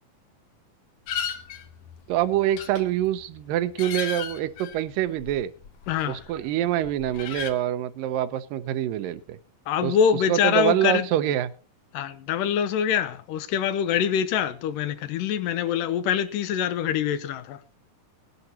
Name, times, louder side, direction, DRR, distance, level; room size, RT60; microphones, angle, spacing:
sound 1, 1.1-6.4 6.7-7.5, left 8 dB, 65° left, 1.7 m, -36 dB
voice 1, 2.1-5.5 6.1-9.4 9.8-11.5, right 12 dB, 80° right, 2.4 m, -25 dB
voice 2, 5.9-6.2 9.7-11.1 11.9-17.6, left 8 dB, 80° left, 2.4 m, -24 dB
19.5 x 11.0 x 2.8 m
omnidirectional pair, 3.9 m